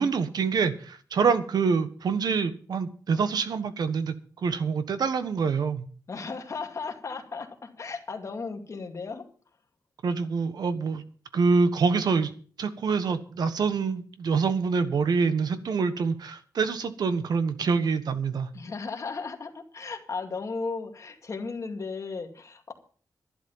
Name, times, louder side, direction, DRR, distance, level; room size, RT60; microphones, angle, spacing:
voice 1, 0.0-5.9 10.0-11.0 11.3-12.3 12.6-18.5, right 5 dB, 85° right, 11 dB, 1.3 m, -26 dB
voice 2, 6.1-9.3 18.5-22.7, left 4 dB, 50° left, 4 dB, 2.3 m, -35 dB
11.5 x 11.5 x 5.6 m, 0.43 s
wide cardioid pair, 110°, 7 cm